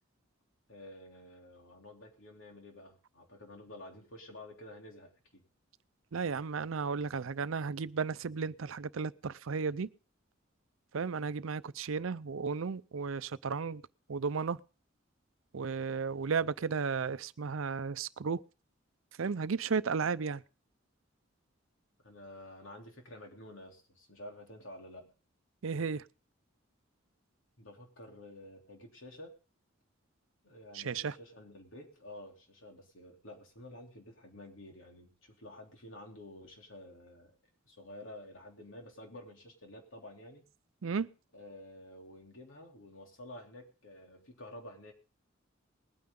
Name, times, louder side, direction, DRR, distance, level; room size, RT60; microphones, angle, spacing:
voice 1, 0.7-5.4 22.0-25.1 27.6-29.4 30.4-37.3 37.6-40.4 41.3-44.9, left 1 dB, 75° left, 3.3 m, -50 dB
voice 2, 6.1-9.9 10.9-13.8 14.1-14.6 15.5-18.4 19.2-20.4 25.6-26.0 30.7-31.2 40.8-41.1, right 5 dB, 85° right, 0.6 m, -34 dB
20.5 x 9.5 x 3.8 m
head